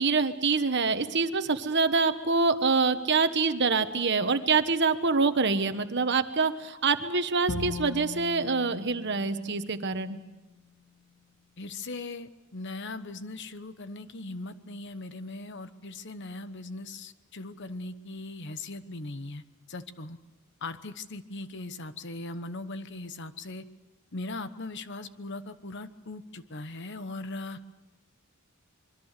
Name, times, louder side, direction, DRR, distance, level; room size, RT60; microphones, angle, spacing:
voice 1, 0.0-10.2, right 4 dB, 55° right, 10 dB, 1.3 m, -25 dB
Bowed string instrument, 7.5-10.6, left 3 dB, 80° left, 2.7 m, -39 dB
voice 2, 11.6-20.2 20.6-23.7 24.1-27.6, left 2 dB, 60° left, 12 dB, 1.1 m, -39 dB
25.5 x 22.5 x 6.7 m, 1.1 s
head